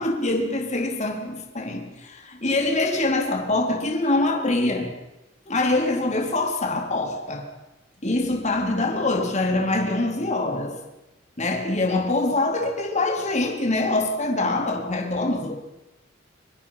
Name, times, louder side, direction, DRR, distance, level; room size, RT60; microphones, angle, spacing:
voice 1, 0.0-4.9 5.5-7.5 8.0-10.8 11.4-15.5, left 2 dB, 40° left, 3.9 m, -24 dB
26.0 x 25.5 x 5.9 m
head